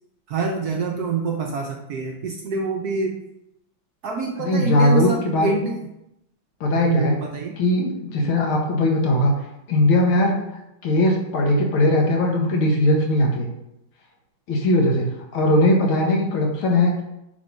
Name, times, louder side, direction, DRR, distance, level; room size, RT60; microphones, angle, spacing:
voice 1, 0.3-3.2 4.0-5.8 6.8-7.6 8.2-8.4, right 4 dB, 65° right, 2 dB, 1.0 m, -26 dB
voice 2, 4.4-5.5 6.6-7.2 7.6-9.3 9.7-10.4 10.8-13.5 14.5-17.0, left 1 dB, 80° left, 1 dB, 2.2 m, -19 dB
8.3 x 3.8 x 5.4 m, 0.86 s
omnidirectional pair, 2.3 m